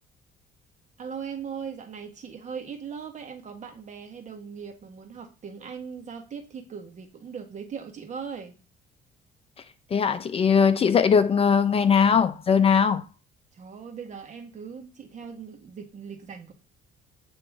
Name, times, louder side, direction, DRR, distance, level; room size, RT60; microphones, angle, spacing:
voice 1, 1.0-8.5 13.5-16.5, right 6 dB, 45° right, 1.4 m, -39 dB
voice 2, 9.9-13.0, left 6 dB, 35° left, 0.5 m, -20 dB
8.7 x 3.1 x 3.5 m
cardioid pair, 110°, 17 cm